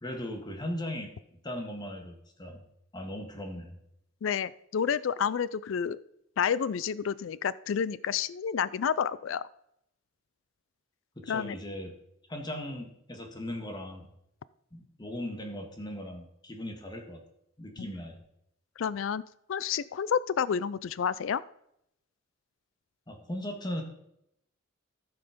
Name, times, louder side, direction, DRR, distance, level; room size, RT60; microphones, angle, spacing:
voice 1, 0.0-1.1 1.4-2.6 2.9-3.8 11.1-11.9 12.3-14.1 14.7-17.2 17.6-18.2 23.1-23.8, left 1 dB, 20° left, 3 dB, 1.6 m, -38 dB
voice 2, 4.2-6.0 6.4-9.5 11.3-11.5 17.8-17.9 18.8-19.2 19.5-21.4, left 7 dB, 70° left, 19 dB, 0.4 m, -30 dB
14.5 x 5.8 x 5.1 m, 0.77 s
head